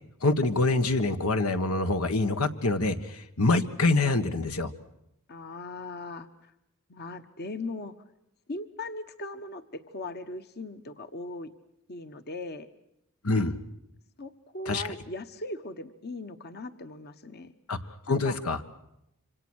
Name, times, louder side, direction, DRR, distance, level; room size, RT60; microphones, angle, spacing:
voice 1, 0.2-4.7 13.2-13.6 14.7-15.0 17.7-17.8 18.1-18.6, left 2 dB, 85° left, 9 dB, 1.7 m, -25 dB
voice 2, 5.3-6.3 6.9-7.9 8.5-11.5 11.9-12.7 14.2-17.5 18.1-18.4, left 2 dB, 50° left, 10 dB, 1.2 m, -39 dB
26.5 x 26.0 x 6.4 m, 0.82 s
head